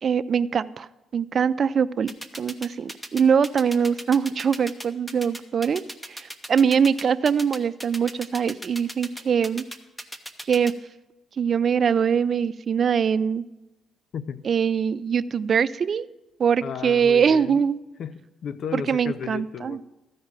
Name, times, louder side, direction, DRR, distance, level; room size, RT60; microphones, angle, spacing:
voice 1, 0.0-0.9 1.1-2.1 2.4-5.8 6.1-9.6 10.5-10.7 11.4-13.4 14.5-16.1 16.4-17.8 18.7-19.8, right 7 dB, 50° right, 16 dB, 0.3 m, -22 dB
sound 1, 2.1-10.7, equal, 5° left, 0.9 m, -36 dB
voice 2, 14.1-14.5 16.6-17.6 18.0-19.8, left 7 dB, 60° left, 15 dB, 0.5 m, -34 dB
14.0 x 5.0 x 7.3 m, 1.0 s
cardioid pair, 90°, 0 cm